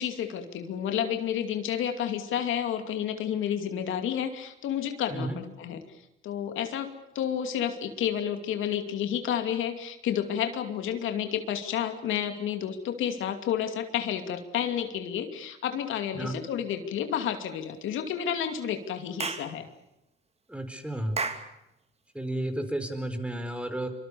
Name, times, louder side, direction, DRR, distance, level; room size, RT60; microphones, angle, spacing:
voice 1, 0.0-5.8 6.2-19.7, left 9 dB, 85° left, 7 dB, 2.6 m, -30 dB
Clapping / Chirp tweet, 19.2-19.5 21.2-21.5, right 4 dB, 30° right, 2.6 m, -31 dB
voice 2, 20.5-21.2 22.1-23.9, right 1 dB, 5° right, 8 dB, 4.7 m, -32 dB
25.0 x 25.0 x 7.0 m, 0.87 s
cardioid pair, 90°, 20 cm